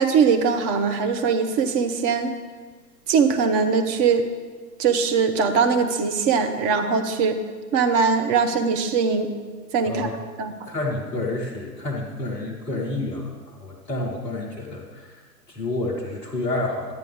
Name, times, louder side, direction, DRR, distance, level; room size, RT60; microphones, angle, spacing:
voice 1, 0.0-2.3 3.1-4.2 4.8-7.4 7.7-9.3 9.7-10.1 10.4-10.5, right 5 dB, 30° right, 7 dB, 0.8 m, -21 dB
voice 2, 10.6-13.3 13.6-15.2 15.5-17.0, left 2 dB, 5° left, -6 dB, 0.3 m, -29 dB
12.0 x 9.1 x 3.5 m, 1.5 s
figure-of-eight pair, 110°, 49 cm